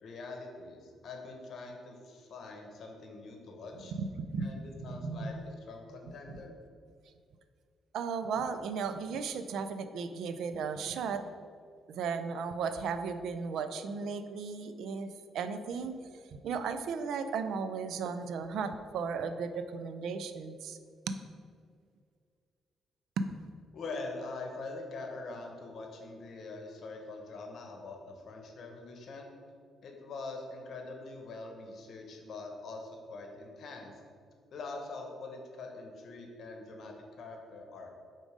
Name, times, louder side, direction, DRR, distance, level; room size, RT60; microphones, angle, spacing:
voice 1, 0.0-3.9 4.4-6.5 23.7-29.3 29.8-34.0 34.5-37.9, left 3 dB, 60° left, 2 dB, 1.0 m, -44 dB
voice 2, 3.9-5.3 6.3-6.4 7.9-11.2 11.9-15.1 15.3-16.0 16.3-20.8 21.1-21.2 23.2-23.3, right 5 dB, 75° right, 9 dB, 0.4 m, -35 dB
5.2 x 3.7 x 5.0 m, 2.2 s
cardioid pair, 90°, 0 cm